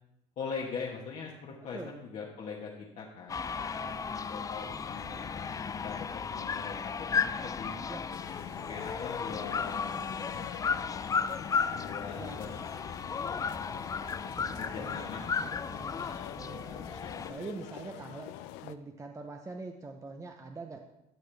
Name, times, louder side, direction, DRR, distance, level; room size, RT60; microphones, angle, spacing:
voice 1, 0.4-3.5 4.3-5.6 5.8-7.7 8.7-10.4 11.8-12.9 14.6-15.6, left 5 dB, 45° left, -3 dB, 1.3 m, -41 dB
sound 1, 3.3-17.3, left 6 dB, 20° left, 0.4 m, -34 dB
voice 2, 3.5-4.3 7.9-8.0 12.1-12.6 14.4-15.0 15.4-18.3 18.6-20.8, right 3 dB, 20° right, 4 dB, 0.7 m, -45 dB
sound 2, 8.1-18.8, left 13 dB, 75° left, 0.5 m, -46 dB
12.0 x 6.3 x 3.3 m, 0.89 s
supercardioid pair, 85°, 17 cm